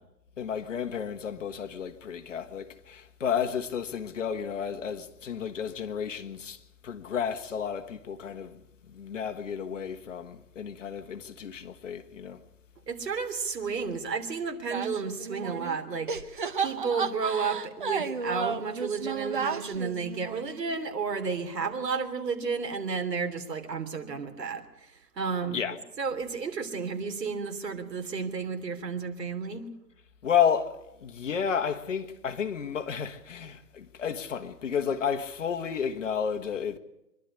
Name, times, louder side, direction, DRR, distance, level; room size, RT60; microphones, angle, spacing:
voice 1, 0.4-6.6 6.8-8.6 8.9-12.4 25.5-25.8 30.2-36.8, left 7 dB, 50° left, 1.4 m, -31 dB
voice 2, 12.9-25.6 26.0-29.7, right 5 dB, 75° right, 3.3 m, -32 dB
sound 1, 14.7-15.8 16.1-20.8, right 5 dB, 30° right, 0.8 m, -33 dB
24.5 x 12.0 x 9.9 m
hypercardioid pair, 165°, 49 cm